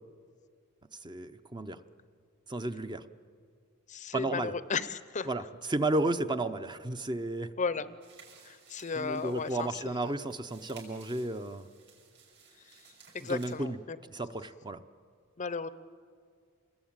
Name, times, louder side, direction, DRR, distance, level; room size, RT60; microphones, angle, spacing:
voice 1, 1.0-1.8 2.5-3.0 4.1-4.5 5.3-7.5 8.9-11.7 13.2-13.8 14.1-14.8, right 2 dB, 20° right, 9 dB, 0.7 m, -33 dB
voice 2, 3.9-5.5 7.6-8.0 8.4-10.1 12.6-12.9 13.1-14.0 15.4-15.7, left 4 dB, 35° left, 14 dB, 0.6 m, -35 dB
sound 1, 8.0-13.5, right 6 dB, 55° right, 6.6 m, -57 dB
27.0 x 21.0 x 8.9 m, 2.1 s
head